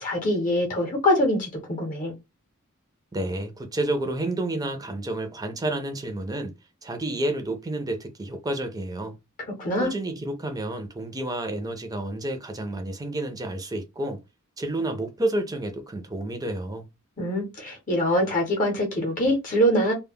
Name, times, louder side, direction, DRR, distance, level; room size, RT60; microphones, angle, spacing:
voice 1, 0.0-2.1 9.6-9.9 17.2-19.9, equal, 40° left, 0.7 m, -24 dB
voice 2, 3.1-6.5 6.8-9.2 9.8-14.2 14.6-16.9, right 1 dB, 15° right, 0.5 m, -30 dB
2.2 x 2.0 x 3.5 m
head